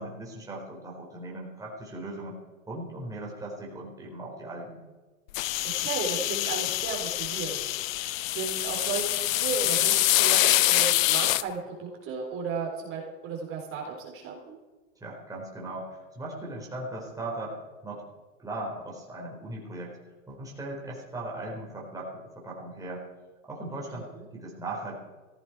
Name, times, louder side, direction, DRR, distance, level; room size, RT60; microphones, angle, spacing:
voice 1, 0.0-2.4 2.7-4.8 15.0-17.6 17.8-18.0 18.4-20.0 20.3-23.0 23.4-25.0, right 2 dB, 10° right, -3 dB, 4.3 m, -38 dB
sound 1, 5.3-11.4, left 16 dB, 85° left, 0.6 m, -25 dB
voice 2, 5.7-7.7 8.3-14.6 23.9-24.3, right 5 dB, 35° right, -1 dB, 3.8 m, -34 dB
16.5 x 15.5 x 4.7 m, 1.3 s
supercardioid pair, 140°, 39 cm